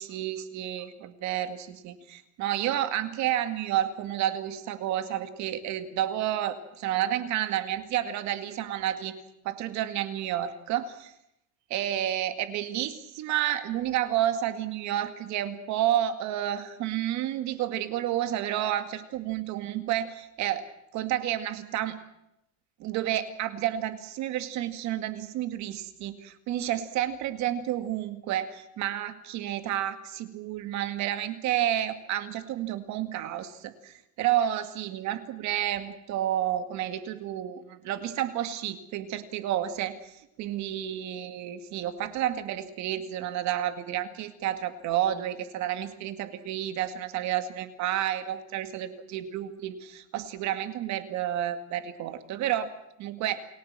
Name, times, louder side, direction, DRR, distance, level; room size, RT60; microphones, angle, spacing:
voice 1, 0.0-9.1 9.4-11.1 11.7-20.7 20.9-22.0 22.8-52.7 53.0-53.4, right 12 dB, 50° right, 10 dB, 2.1 m, -30 dB
29.5 x 18.0 x 7.5 m, 0.82 s
cardioid pair, 155°, 36 cm